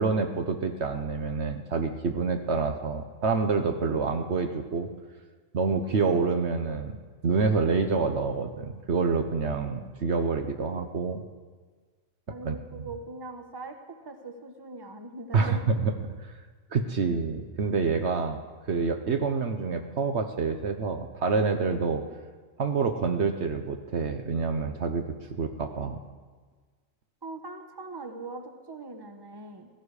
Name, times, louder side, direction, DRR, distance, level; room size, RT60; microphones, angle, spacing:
voice 1, 0.0-4.9 5.5-7.0 7.2-11.2 12.4-12.9 15.3-15.9 16.2-16.4 16.7-18.4 18.7-22.0 22.6-25.0 25.4-26.0, right 4 dB, 60° right, 6 dB, 1.1 m, -27 dB
voice 2, 5.8-6.5 12.3-13.8 14.0-15.7 21.9-22.1 27.2-29.7, right 2 dB, 20° right, 6 dB, 1.2 m, -41 dB
16.0 x 16.0 x 4.9 m, 1.4 s
omnidirectional pair, 1.3 m